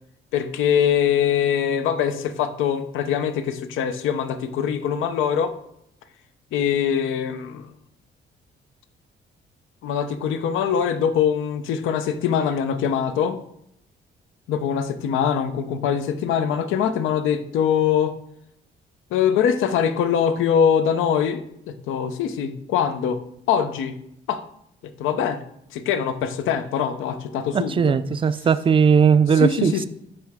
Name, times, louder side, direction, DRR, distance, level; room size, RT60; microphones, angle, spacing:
voice 1, 0.3-5.5 6.5-7.7 9.8-13.4 14.5-18.1 19.1-23.2 23.5-23.9 24.3-24.4 24.8-25.4 25.7-28.0 29.4-29.9, left 8 dB, 90° left, 10 dB, 0.6 m, -23 dB
voice 2, 27.5-29.9, right 6 dB, 25° right, 14 dB, 0.3 m, -18 dB
9.5 x 3.2 x 3.5 m, 0.76 s
cardioid pair, 90°, 20 cm